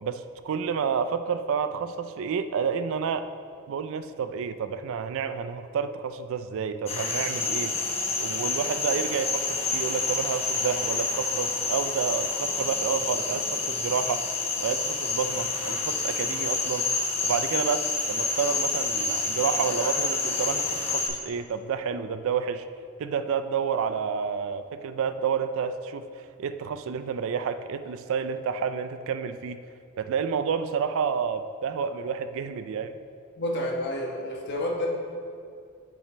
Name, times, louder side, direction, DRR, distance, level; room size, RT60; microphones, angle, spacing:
voice 1, 0.0-3.3 3.7-7.9 8.2-14.3 14.6-16.9 17.2-22.6 23.0-29.6 30.0-33.0, right 6 dB, 60° right, 11 dB, 0.3 m, -29 dB
sound 1, 6.9-21.1, left 4 dB, 25° left, 0.9 m, -28 dB
voice 2, 33.4-34.9, left 1 dB, 50° left, -1 dB, 1.1 m, -29 dB
7.6 x 7.3 x 3.2 m, 2.3 s
head